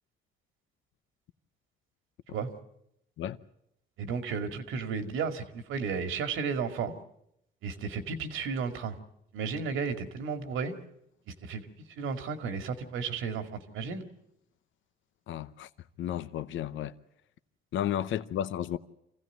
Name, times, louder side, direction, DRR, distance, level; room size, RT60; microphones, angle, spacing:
voice 1, 4.0-6.9 7.6-8.9 9.3-10.7 11.4-11.6 12.0-14.0, right 5 dB, 85° right, 2.3 m, -33 dB
voice 2, 15.3-15.7 16.0-16.9 17.7-18.8, left 11 dB, 75° left, 0.8 m, -32 dB
26.0 x 16.0 x 9.3 m
cardioid pair, 90°, 20 cm